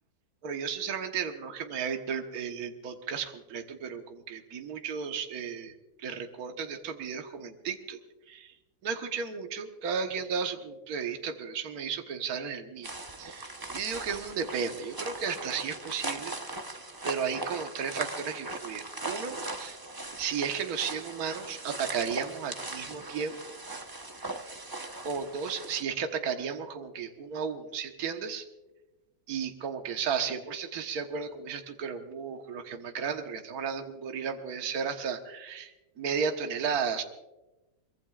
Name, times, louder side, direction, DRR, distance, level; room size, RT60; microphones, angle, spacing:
voice 1, 0.4-8.0 8.3-8.5 8.8-12.9 13.2-16.6 17.0-19.8 20.2-23.4 25.0-28.5 29.3-37.0, right 6 dB, 55° right, 5 dB, 1.6 m, -34 dB
sound 1, 12.8-25.8, right 2 dB, 20° right, 0.5 m, -39 dB
23.5 x 21.5 x 2.4 m, 1.0 s
omnidirectional pair, 2.0 m